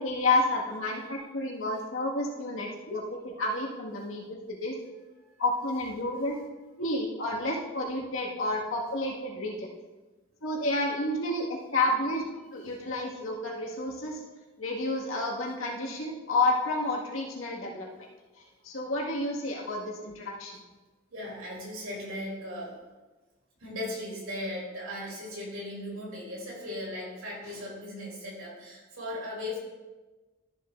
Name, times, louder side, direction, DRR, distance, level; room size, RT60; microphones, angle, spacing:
voice 1, 0.0-4.7 5.4-6.4 6.8-9.7 10.4-12.2 12.5-14.2 14.6-17.9 18.6-20.6, left 2 dB, 85° left, -2 dB, 1.9 m, -30 dB
voice 2, 21.1-22.7 23.6-29.6, left 1 dB, 90° right, -4 dB, 3.2 m, -37 dB
13.0 x 7.4 x 2.6 m, 1.2 s
head